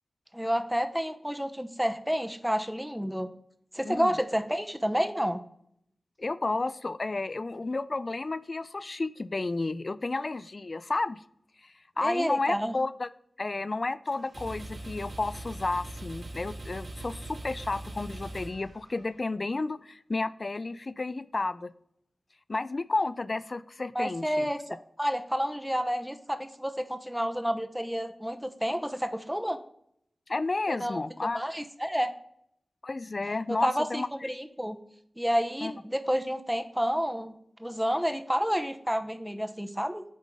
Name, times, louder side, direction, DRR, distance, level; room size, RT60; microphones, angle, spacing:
voice 1, 0.3-3.3 3.7-5.4 12.0-12.7 23.9-24.6 25.0-29.6 30.7-31.0 31.3-32.1 33.5-34.8 35.2-40.0, equal, 5° right, 7 dB, 0.9 m, -30 dB
voice 2, 3.8-4.2 6.2-11.2 11.6-13.1 13.4-21.7 22.5-24.4 30.3-31.4 32.8-34.3 35.6-35.7, left 3 dB, 55° left, 15 dB, 0.4 m, -32 dB
sound 1, 14.1-19.2, right 2 dB, 60° right, 2.6 m, -41 dB
10.0 x 3.7 x 3.7 m, 0.71 s
cardioid pair, 40°, 0 cm